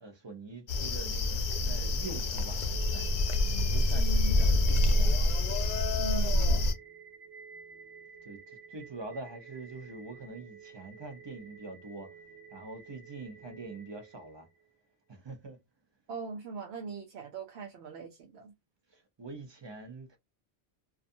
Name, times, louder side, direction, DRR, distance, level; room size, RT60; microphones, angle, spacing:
voice 1, 0.0-3.2 3.7-5.3 8.2-12.1 12.5-14.5 15.1-15.6 18.9-20.2, right 3 dB, 30° right, 0.6 m, -44 dB
sound 1, 0.7-6.7, left 2 dB, 55° left, 0.6 m, -27 dB
sound 2, 2.7-14.7, right 5 dB, ahead, 1.0 m, -51 dB
voice 2, 3.9-4.4 6.0-6.7 16.1-18.5, right 4 dB, 80° right, 0.8 m, -40 dB
2.4 x 2.4 x 2.6 m
omnidirectional pair, 1.1 m